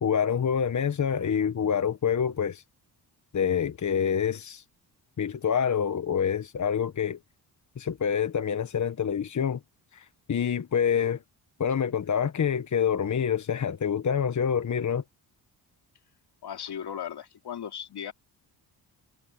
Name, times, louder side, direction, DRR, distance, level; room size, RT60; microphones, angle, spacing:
voice 1, 0.0-2.6 3.3-4.6 5.2-7.2 7.8-9.6 9.9-11.2 11.6-15.0, left 7 dB, 45° left, 1.3 m, -26 dB
voice 2, 16.4-18.1, left 9 dB, 65° left, 3.1 m, -37 dB
cardioid pair, 80°, 42 cm